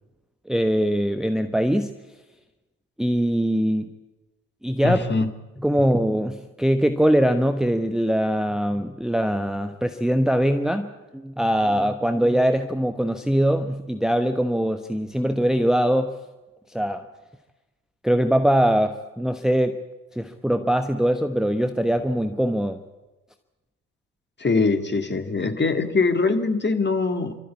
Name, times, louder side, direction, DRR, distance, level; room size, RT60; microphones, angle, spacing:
voice 1, 0.5-1.9 3.0-3.9 4.6-5.3 5.6-16.1 16.7-17.0 18.0-19.8 20.1-22.8, equal, ahead, 7 dB, 1.1 m, -22 dB
voice 2, 4.8-5.3 24.4-27.4, left 4 dB, 25° left, 6 dB, 2.1 m, -22 dB
28.0 x 13.5 x 8.5 m, 1.1 s
figure-of-eight pair, 50°, 43 cm